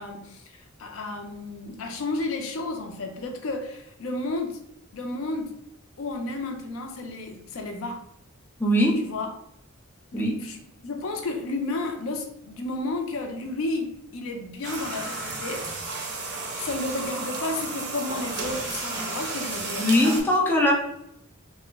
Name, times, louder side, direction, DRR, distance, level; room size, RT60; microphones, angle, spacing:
voice 1, 0.0-4.6 4.9-5.6 6.0-8.0 9.0-9.3 10.1-10.6 10.8-15.9 16.6-19.9, left 2 dB, 70° left, 4 dB, 0.4 m, -32 dB
voice 2, 8.6-9.0 10.1-10.3 19.8-20.7, left 1 dB, 10° left, -2 dB, 0.6 m, -20 dB
sound 1, 14.6-20.2, right 3 dB, 55° right, 0.7 m, -32 dB
2.9 x 2.1 x 3.4 m, 0.75 s
head